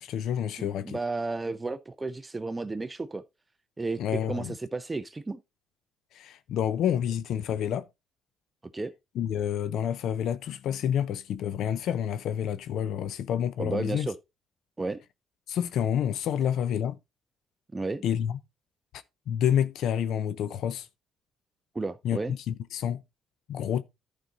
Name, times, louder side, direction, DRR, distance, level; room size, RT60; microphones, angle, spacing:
voice 1, 0.0-1.0 4.0-4.5 6.1-7.9 9.2-14.1 15.5-17.0 18.0-18.4 18.9-20.9 22.0-22.2 22.5-23.0 23.5-23.8, left 9 dB, 75° left, 0.5 m, -29 dB
voice 2, 0.6-3.2 3.8-5.4 8.7-8.9 13.6-14.1 14.8-15.0 17.7-18.0 21.7-22.3, right 3 dB, 15° right, 0.5 m, -33 dB
11.5 x 5.2 x 3.8 m
cardioid pair, 110°, 0 cm